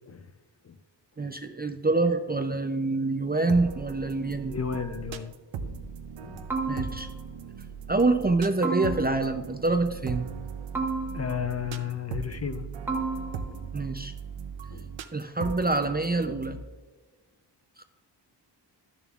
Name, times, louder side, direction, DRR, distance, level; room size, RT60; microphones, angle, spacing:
voice 1, 1.2-4.6 6.7-7.1 7.9-10.3 13.7-14.1 15.1-16.6 17.8-17.9, right 3 dB, 25° right, 7 dB, 0.4 m, -26 dB
sound 1, 3.5-16.6, right 6 dB, 85° right, 0.6 m, -38 dB
voice 2, 4.5-5.3 5.6-5.8 6.2-6.4 11.1-13.1 13.5-13.6 14.7-14.9, left 7 dB, 35° left, 9 dB, 0.5 m, -34 dB
sound 2, 6.5-7.3 8.6-9.4 10.7-11.6 12.9-13.7, right 3 dB, 5° right, 0.9 m, -32 dB
12.0 x 7.0 x 2.4 m, 1.3 s
wide cardioid pair, 130°, 44 cm